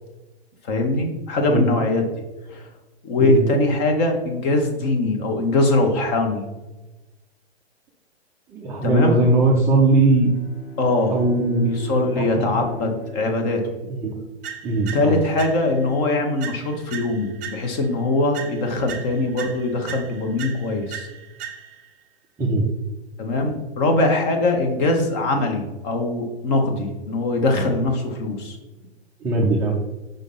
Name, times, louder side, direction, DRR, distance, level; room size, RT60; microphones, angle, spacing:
voice 1, 0.6-2.0 2.5-2.7 3.0-6.4 8.8-9.2 10.8-11.2 11.6-13.6 14.9-21.1 23.2-28.6, left 2 dB, 40° left, 3 dB, 1.4 m, -22 dB
voice 2, 8.5-10.3 11.1-11.7 12.2-12.5 13.9-14.2 14.6-15.2 22.4-22.6 29.2-29.7, right 2 dB, 10° right, -4 dB, 0.4 m, -19 dB
Bowed string instrument, 9.9-14.2, left 2 dB, 65° left, 1.3 m, -39 dB
sound 1, 14.4-15.9 16.4-17.9 18.3-21.9, right 8 dB, 25° right, 0.9 m, -38 dB
5.4 x 3.6 x 5.6 m, 1.1 s
hypercardioid pair, 135°, 33 cm